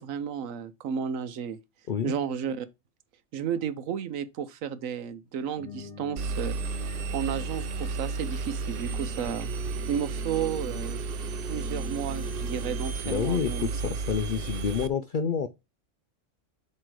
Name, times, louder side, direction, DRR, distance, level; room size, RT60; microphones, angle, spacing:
voice 1, 0.0-1.6 2.0-2.7 3.3-6.6 7.1-9.5 9.9-11.0 11.5-13.7, right 8 dB, 80° right, 1.1 m, -32 dB
sound 1, 5.6-12.8, left 2 dB, ahead, 2.0 m, -44 dB
Engine, 6.2-14.9, right 4 dB, 60° right, 0.6 m, -33 dB
voice 2, 13.0-15.5, left 7 dB, 65° left, 0.5 m, -28 dB
7.7 x 3.2 x 4.7 m
omnidirectional pair, 1.4 m